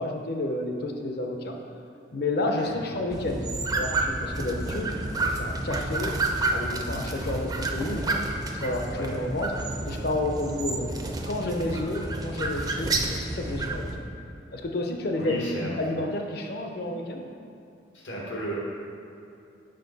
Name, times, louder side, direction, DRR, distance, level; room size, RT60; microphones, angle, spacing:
voice 1, 0.0-1.6 2.1-3.5 3.7-4.9 5.3-6.2 6.5-8.0 8.5-9.6 9.8-10.9 11.2-13.9 14.5-17.3, left 2 dB, 55° left, 3 dB, 0.6 m, -30 dB
sound 1, 3.1-14.0, right 2 dB, 20° right, 0.4 m, -30 dB
voice 2, 15.1-15.7 17.9-18.5, equal, 85° left, -4 dB, 1.5 m, -33 dB
6.6 x 5.4 x 4.0 m, 2.6 s
head